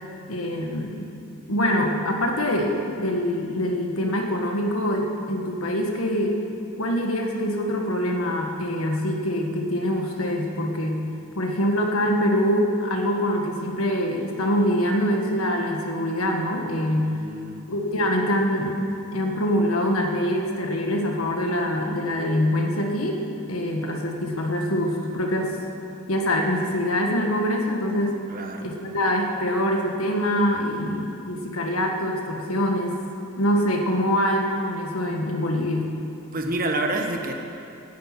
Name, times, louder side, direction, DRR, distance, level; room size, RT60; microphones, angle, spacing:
voice 1, 0.3-1.1 1.5-6.4 6.8-11.0 11.3-17.1 17.7-18.8 19.1-23.2 23.5-25.6 26.1-28.2 28.6-33.0 33.4-35.9, equal, 70° left, 2 dB, 1.7 m, -24 dB
voice 2, 16.9-17.6 28.3-28.7 36.3-37.3, right 2 dB, 40° right, 3 dB, 1.2 m, -28 dB
10.5 x 10.0 x 9.3 m, 2.7 s
head